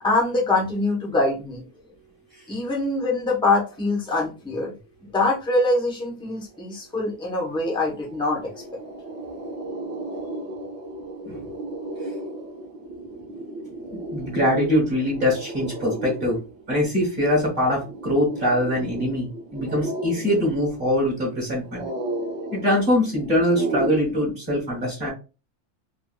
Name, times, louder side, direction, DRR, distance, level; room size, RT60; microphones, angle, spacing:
voice 1, 0.0-1.6 2.5-4.7 5.1-8.5, left 2 dB, 5° left, -1 dB, 0.5 m, -24 dB
sound 1, 7.4-7.5 7.8-24.0, right 1 dB, 65° right, 0.8 m, -34 dB
voice 2, 14.1-16.4 16.7-21.9 22.5-25.1, left 1 dB, 40° right, -1 dB, 1.1 m, -23 dB
3.4 x 2.4 x 2.2 m, 0.31 s
omnidirectional pair, 1.6 m